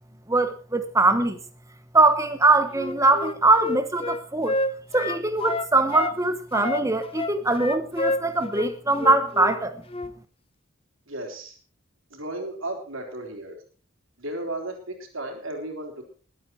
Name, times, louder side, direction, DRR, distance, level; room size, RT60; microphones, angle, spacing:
voice 1, 0.3-1.4 1.9-4.5 4.9-9.7, right 2 dB, 15° right, 10 dB, 1.0 m, -22 dB
Wind instrument woodwind instrument, 2.7-6.2 6.5-9.6 9.9-10.1, left 2 dB, 25° left, 0.7 m, -29 dB
voice 2, 11.1-11.6 12.1-13.6 14.2-16.0, right 1 dB, 70° right, 3 dB, 3.5 m, -34 dB
21.0 x 8.6 x 4.5 m, 0.39 s
head